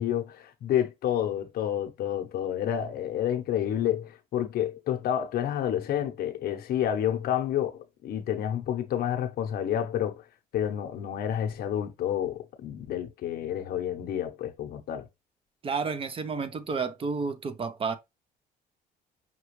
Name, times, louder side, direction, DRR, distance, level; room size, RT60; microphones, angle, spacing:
voice 1, 0.0-10.2 10.5-15.1, left 10 dB, 65° left, 0.7 m, -29 dB
voice 2, 15.6-17.9, right 5 dB, 35° right, 0.6 m, -31 dB
5.8 x 2.3 x 3.1 m
cardioid pair, 110°, 17 cm